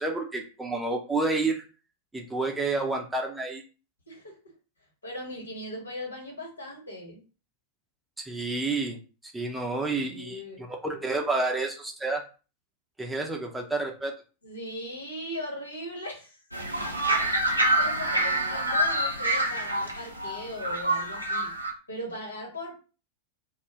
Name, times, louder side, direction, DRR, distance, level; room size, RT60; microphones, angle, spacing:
voice 1, 0.0-1.6 2.1-3.6 8.2-12.2 13.0-14.1, right 3 dB, 5° right, 1 dB, 0.5 m, -30 dB
voice 2, 4.1-4.5 5.0-7.2 9.9-10.7 14.4-16.4 17.4-21.5 21.9-22.8, left 1 dB, 75° left, -1 dB, 1.3 m, -39 dB
sound 1, 16.5-21.7, right 1 dB, 85° right, 0.6 m, -26 dB
2.4 x 2.1 x 3.3 m, 0.34 s
figure-of-eight pair, 90°, 0 cm